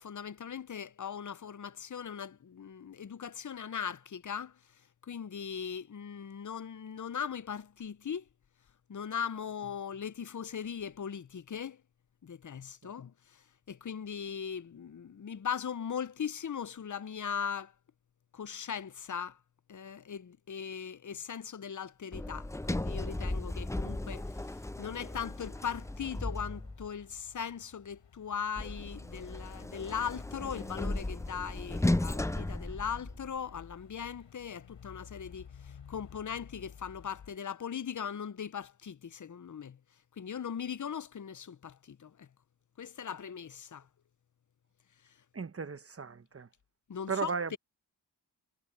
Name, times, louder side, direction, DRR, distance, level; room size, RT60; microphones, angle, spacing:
voice 1, 0.0-4.6 5.0-8.2 8.9-11.8 12.2-17.7 18.3-19.4 19.7-39.8 40.2-42.3 42.8-43.9 46.9-47.6, left 7 dB, 45° left, 0.8 m, -39 dB
Sliding door, 22.1-27.0 28.6-33.5, left 1 dB, 5° left, 0.6 m, -35 dB
sound 1, 25.2-37.4, left 7 dB, 85° left, 3.8 m, -55 dB
voice 2, 45.3-46.5 47.1-47.6, right 5 dB, 30° right, 1.1 m, -36 dB
cardioid pair, 55°, 43 cm